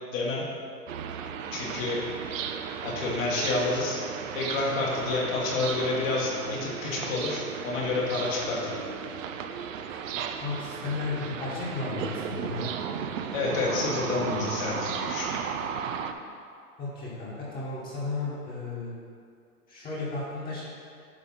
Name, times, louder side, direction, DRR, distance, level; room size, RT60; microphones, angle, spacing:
voice 1, 0.1-0.5 1.5-2.0 2.8-4.0 4.3-8.8 13.3-15.4, left 3 dB, 55° left, -5 dB, 1.8 m, -29 dB
sound 1, 0.9-16.1, right 7 dB, 55° right, 0.6 m, -35 dB
voice 2, 10.4-13.0 16.8-18.9 19.7-20.6, left 3 dB, 20° left, -7 dB, 1.5 m, -34 dB
9.8 x 3.4 x 5.5 m, 2.3 s
hypercardioid pair, 130°, 47 cm